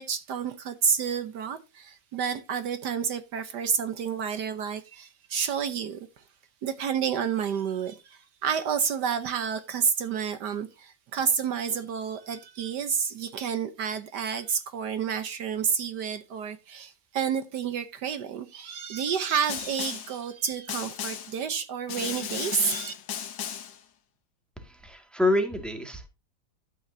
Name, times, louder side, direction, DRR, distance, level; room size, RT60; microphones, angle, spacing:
voice 1, 0.0-6.2 6.6-22.9, right 7 dB, 70° right, 1.4 m, -30 dB
Snare drum, 19.5-20.2 20.7-21.4 21.9-23.8, left 8 dB, 85° left, 1.9 m, -35 dB
voice 2, 24.6-26.1, left 2 dB, ahead, 1.9 m, -27 dB
12.5 x 9.1 x 2.7 m
omnidirectional pair, 2.0 m